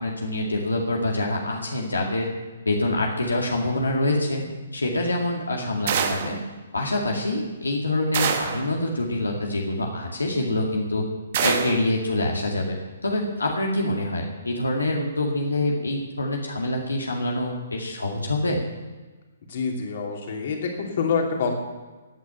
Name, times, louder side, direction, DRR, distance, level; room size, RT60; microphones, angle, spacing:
voice 1, 0.0-2.3 2.7-4.4 4.7-6.4 6.7-11.0 11.4-12.8 13.0-18.6, left 1 dB, 85° left, 0 dB, 2.1 m, -25 dB
sound 1, 5.9-6.4 8.1-8.7 11.3-11.9, right 7 dB, 50° right, 1.3 m, -25 dB
voice 2, 19.5-21.5, left 5 dB, 55° left, 1 dB, 2.9 m, -26 dB
16.0 x 9.2 x 5.9 m, 1.3 s
figure-of-eight pair, 130°, 0 cm